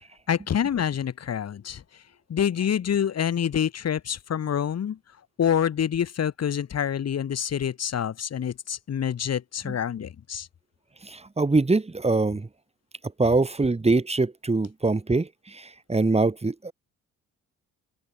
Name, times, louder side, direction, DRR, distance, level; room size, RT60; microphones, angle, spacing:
voice 1, 0.3-1.8 2.3-5.0 5.4-10.5, left 8 dB, 55° left, 4.6 m, -27 dB
voice 2, 11.0-12.5 13.2-16.7, right 3 dB, 20° right, 6.2 m, -24 dB
open air
cardioid pair, 90°, 30 cm